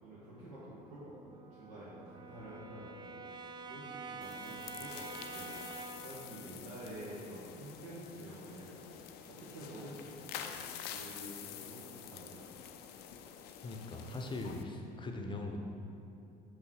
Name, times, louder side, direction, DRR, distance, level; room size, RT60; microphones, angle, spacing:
voice 1, 0.0-5.5 6.0-8.8 9.3-12.5, right 1 dB, 60° right, -9 dB, 1.5 m, -49 dB
Brass instrument, 0.7-6.2, right 4 dB, 20° right, 0.5 m, -47 dB
sound 1, 4.2-14.6, left 9 dB, 50° left, 0.5 m, -48 dB
voice 2, 13.6-15.6, left 2 dB, 20° left, 3 dB, 0.9 m, -40 dB
6.1 x 5.6 x 4.7 m, 2.8 s
figure-of-eight pair, 60°, 21 cm